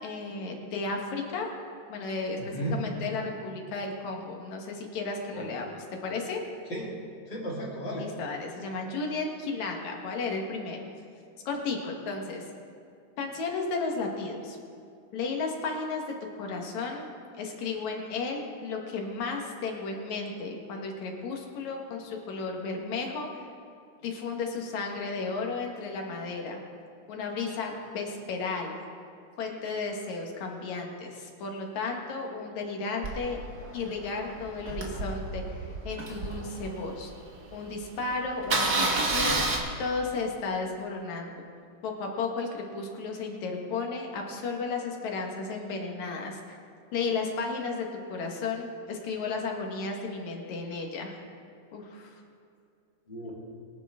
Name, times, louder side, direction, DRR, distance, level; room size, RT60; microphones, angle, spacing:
voice 1, 0.0-1.5 1.9-6.4 8.0-10.8 11.5-12.5 13.2-14.6 15.1-16.0 16.4-17.1 17.3-23.5 24.0-26.6 27.1-28.8 29.4-33.4 33.7-37.1 37.5-39.4 39.8-41.4 41.8-46.6 46.9-51.2 51.7-52.1, left 4 dB, 65° left, 1 dB, 2.8 m, -34 dB
voice 2, 2.4-2.8 5.3-5.5 6.7-6.9 7.3-8.1 53.1-53.3, right 1 dB, 35° left, -5 dB, 3.5 m, -34 dB
Engine starting, 33.0-37.2 37.7-37.8 38.0-38.1 38.4-39.6, right 2 dB, 40° right, 1.6 m, -30 dB
23.5 x 9.8 x 3.7 m, 2.4 s
omnidirectional pair, 3.6 m